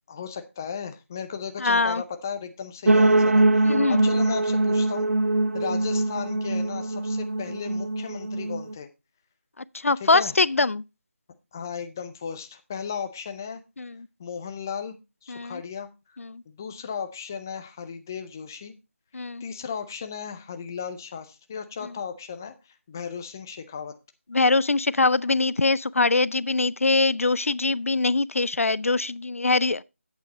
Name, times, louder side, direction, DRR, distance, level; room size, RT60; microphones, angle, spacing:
voice 1, 0.1-5.1 5.5-8.9 10.0-10.3 11.5-13.6 14.2-15.0 15.2-15.9 16.5-18.7 19.4-23.9, left 6 dB, 15° left, 0.5 m, -35 dB
voice 2, 1.6-2.0 3.6-4.1 9.6-10.8 13.8-14.1 15.3-15.6 16.2-16.4 19.1-19.4 21.8-21.9 24.3-29.8, left 3 dB, 75° left, 0.4 m, -23 dB
sound 1, 2.9-8.7, right 2 dB, 70° right, 1.0 m, -22 dB
8.2 x 8.0 x 3.9 m
figure-of-eight pair, 170°, 8 cm